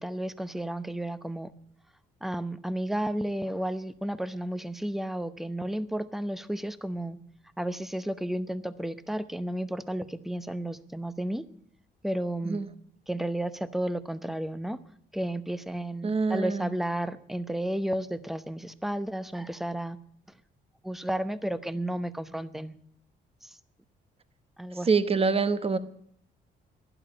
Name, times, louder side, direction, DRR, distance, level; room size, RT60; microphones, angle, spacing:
voice 1, 0.0-1.5 2.2-7.2 7.6-11.4 12.0-12.6 13.1-14.8 15.1-20.0 20.8-22.7 23.4-23.6 24.6-24.9, right 1 dB, ahead, 14 dB, 0.8 m, -32 dB
voice 2, 16.0-16.7 24.9-25.8, right 4 dB, 30° right, 13 dB, 1.1 m, -25 dB
12.0 x 10.5 x 8.8 m, 0.68 s
cardioid pair, 90°, 20 cm